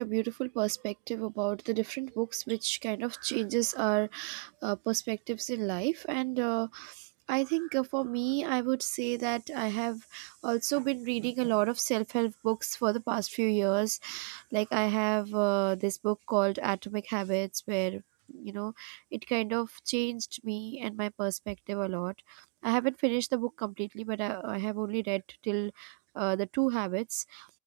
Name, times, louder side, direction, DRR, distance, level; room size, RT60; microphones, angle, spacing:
voice 1, 0.0-18.0 18.3-27.5, right 30 dB, 40° right, 0.4 m, -31 dB
open air
figure-of-eight pair, 80°, 47 cm